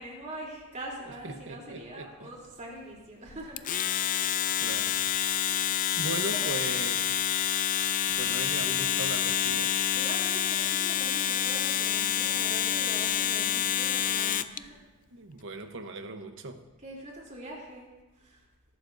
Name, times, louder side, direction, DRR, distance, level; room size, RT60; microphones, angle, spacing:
voice 1, 0.0-4.3 5.4-5.6 6.2-6.6 9.9-14.8 16.8-17.9 18.1-18.5, right 1 dB, 35° right, -2 dB, 3.4 m, -43 dB
voice 2, 1.0-2.3 4.1-5.5 6.0-7.4 8.1-9.8 15.1-16.6, right 3 dB, 60° right, 7 dB, 1.0 m, -39 dB
Domestic sounds home sounds, 3.6-14.6, left 10 dB, 35° left, 0.4 m, -28 dB
22.0 x 11.5 x 2.7 m, 1.1 s
head